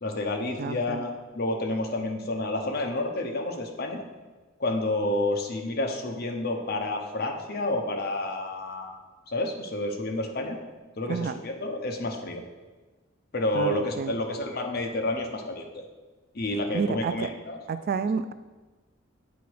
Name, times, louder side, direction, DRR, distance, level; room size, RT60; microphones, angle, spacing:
voice 1, 0.0-4.0 4.6-9.0 9.3-10.6 11.0-12.4 13.3-15.8 16.3-17.6, left 2 dB, 55° left, 3 dB, 0.9 m, -29 dB
voice 2, 0.6-1.0 11.1-11.4 13.5-14.2 16.7-17.3 17.7-18.3, right 5 dB, 50° right, 12 dB, 0.3 m, -30 dB
8.3 x 4.0 x 4.7 m, 1.2 s
head